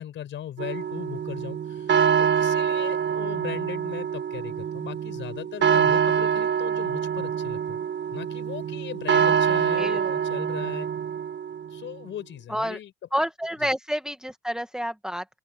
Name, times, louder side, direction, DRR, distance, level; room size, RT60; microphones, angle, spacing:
voice 1, 0.0-7.8 8.1-10.9 11.7-12.9, left 10 dB, 75° left, 5.6 m, -38 dB
sound 1, 0.6-11.8, right 7 dB, 65° right, 1.6 m, -25 dB
voice 2, 9.7-10.1 12.5-12.8 13.1-15.4, equal, 5° right, 1.3 m, -29 dB
open air
cardioid pair, 120°, 20 cm